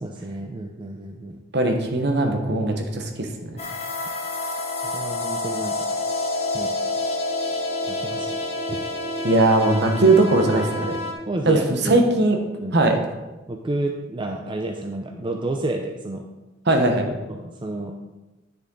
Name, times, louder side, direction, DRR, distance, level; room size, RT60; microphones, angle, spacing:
voice 1, 0.0-1.4 4.8-5.9 6.5-6.7 7.9-8.8 10.5-10.6 11.3-12.0 12.6-12.8 13.5-16.2 17.3-18.0, right 2 dB, 25° right, 3 dB, 0.5 m, -30 dB
voice 2, 1.5-3.5 9.2-11.0 11.4-12.4 12.7-13.0 16.7-17.1, right 2 dB, 60° right, 4 dB, 1.2 m, -19 dB
sound 1, 3.6-11.1, left 2 dB, 30° left, 1.2 m, -28 dB
9.9 x 6.8 x 3.9 m, 1.1 s
head